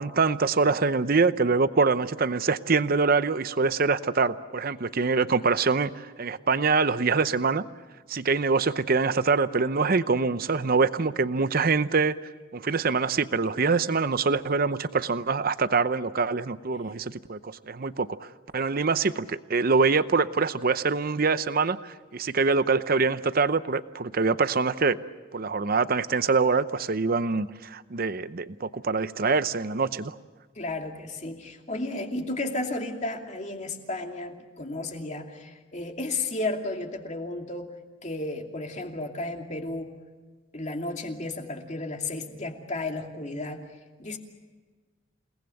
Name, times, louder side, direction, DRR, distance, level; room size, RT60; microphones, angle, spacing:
voice 1, 0.0-7.6 8.1-12.1 12.5-25.0 25.3-30.1, right 4 dB, 45° right, 14 dB, 0.7 m, -24 dB
voice 2, 30.5-37.7 38.0-39.9 40.5-43.7 44.0-44.2, left 2 dB, 35° left, 3 dB, 2.7 m, -33 dB
29.0 x 19.5 x 7.7 m, 1.3 s
head